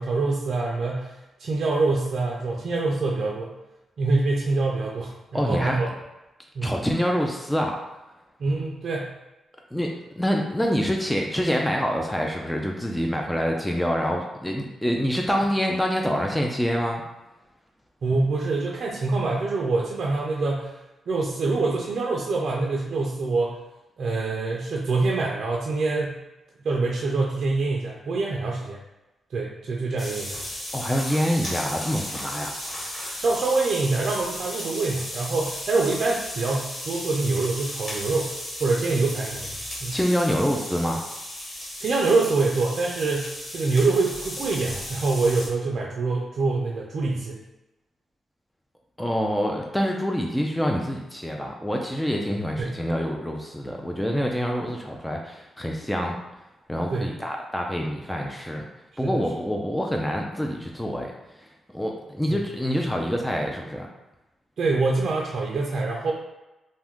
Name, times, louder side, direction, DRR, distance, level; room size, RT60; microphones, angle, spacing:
voice 1, 0.0-3.5 4.0-5.9 6.5-6.8 8.4-9.1 18.0-20.7 21.1-23.6 24.0-26.2 26.6-28.8 29.3-30.4 33.2-40.0 41.8-47.4 52.6-52.8 54.1-54.2 56.9-57.1 59.0-59.2 62.3-62.4 64.6-66.1, right 3 dB, 60° right, -2 dB, 0.4 m, -25 dB
voice 2, 5.3-5.8 6.6-7.8 9.7-9.9 10.2-17.0 30.7-32.5 39.9-41.0 49.0-56.2 56.7-58.7 59.0-61.1 61.4-61.5 61.7-63.9, equal, 5° left, 0 dB, 0.4 m, -26 dB
sound 1, 30.0-45.5, left 1 dB, 40° left, 1.3 m, -35 dB
2.6 x 2.3 x 3.5 m, 1.0 s
cardioid pair, 85°, 0 cm